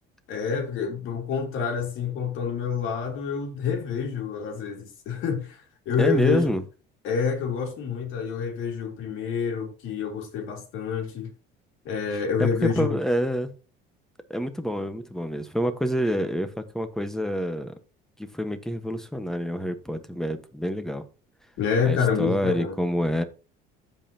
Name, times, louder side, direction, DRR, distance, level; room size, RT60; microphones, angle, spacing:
voice 1, 0.3-5.6 5.8-6.4 7.0-11.3 11.8-12.9 21.6-22.8, left 6 dB, 70° left, 3.2 m, -27 dB
voice 2, 6.0-6.6 12.4-13.5 14.3-17.8 18.2-21.0 21.8-23.2, equal, ahead, 1.2 m, -27 dB
15.0 x 5.4 x 2.8 m
cardioid pair, 120°, 21 cm